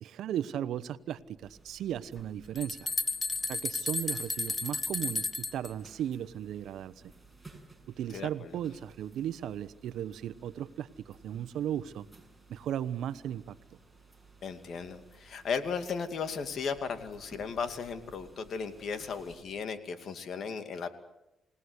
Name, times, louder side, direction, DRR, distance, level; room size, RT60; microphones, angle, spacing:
voice 1, 0.0-2.9 3.5-6.9 7.9-12.0 12.5-13.6, right 10 dB, 75° right, 14 dB, 1.0 m, -36 dB
sound 1, 1.4-19.4, right 3 dB, 5° right, 6.7 m, -57 dB
sound 2, 2.2-5.7, left 3 dB, 20° left, 1.5 m, -33 dB
voice 2, 8.1-8.5 14.4-20.9, left 5 dB, 60° left, 9 dB, 2.5 m, -36 dB
29.0 x 18.0 x 8.2 m, 0.92 s
cardioid pair, 90°, 0 cm